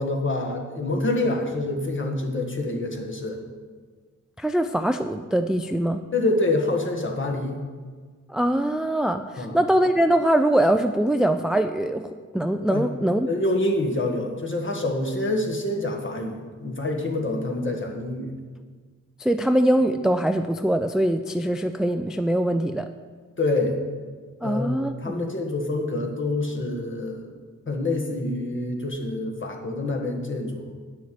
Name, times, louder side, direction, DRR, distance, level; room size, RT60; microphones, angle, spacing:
voice 1, 0.0-3.4 6.1-7.6 9.4-9.6 12.7-12.9 13.2-18.3 23.4-23.8 24.4-27.3 27.7-30.7, left 2 dB, 40° left, 2 dB, 1.5 m, -26 dB
voice 2, 4.4-6.0 8.3-13.3 19.2-22.9 24.4-25.3, right 1 dB, ahead, 8 dB, 0.3 m, -23 dB
9.4 x 6.5 x 6.8 m, 1.5 s
wide cardioid pair, 100°, 30 cm